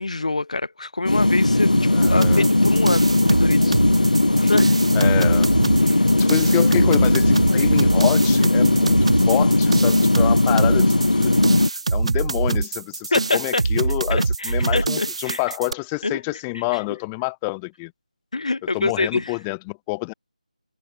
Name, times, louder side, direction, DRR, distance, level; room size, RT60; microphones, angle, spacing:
voice 1, 0.0-3.8 4.4-4.7 5.8-6.1 13.1-13.6 14.1-15.4 16.0-16.2 18.3-19.4, left 3 dB, 55° left, 1.8 m, -26 dB
sound 1, 1.1-11.7, left 1 dB, 75° left, 1.5 m, -18 dB
voice 2, 1.9-2.5 4.9-5.5 6.1-11.3 11.9-17.9 18.7-20.1, left 29 dB, 10° left, 1.1 m, -27 dB
sound 2, 2.0-15.7, right 3 dB, 50° right, 0.7 m, -24 dB
figure-of-eight pair, 160°, 4 cm